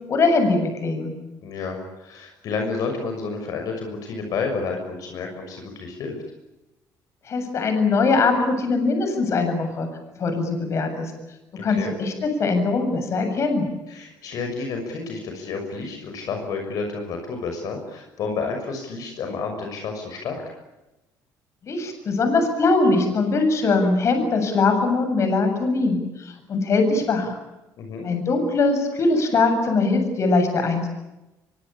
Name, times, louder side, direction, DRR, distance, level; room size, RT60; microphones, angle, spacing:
voice 1, 0.1-1.1 7.3-9.9 10.2-11.1 11.6-13.7 21.6-27.4 28.0-30.9, left 3 dB, 45° left, 7 dB, 7.7 m, -21 dB
voice 2, 1.4-6.1 11.5-11.9 13.9-20.4 27.8-28.1, left 4 dB, 65° left, 4 dB, 6.3 m, -30 dB
24.5 x 24.5 x 8.8 m, 0.99 s
cardioid pair, 120°, 7 cm